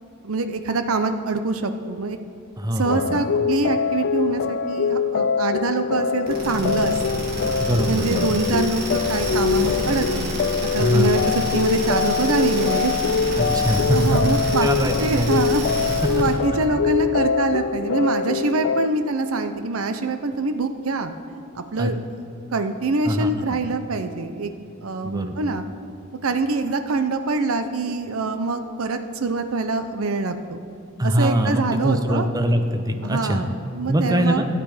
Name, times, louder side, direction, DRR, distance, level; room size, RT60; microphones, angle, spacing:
voice 1, 0.2-2.2 2.8-7.2 7.9-13.3 13.7-14.7 15.0-21.1 21.5-22.0 22.5-24.5 24.8-25.6 26.2-30.6 31.0-32.3 33.0-34.5, right 3 dB, 85° right, 8 dB, 0.7 m, -25 dB
voice 2, 2.6-3.2 7.6-8.4 10.8-11.1 13.4-15.4 21.8-21.9 23.0-23.6 25.0-25.3 31.0-33.4 33.9-34.5, right 1 dB, 20° right, 7 dB, 0.6 m, -23 dB
sound 1, 2.8-18.9, left 6 dB, 55° left, 0.3 m, -23 dB
sound 2, 6.3-16.4, right 1 dB, 50° right, 2.2 m, -29 dB
12.0 x 8.5 x 4.9 m, 2.5 s
head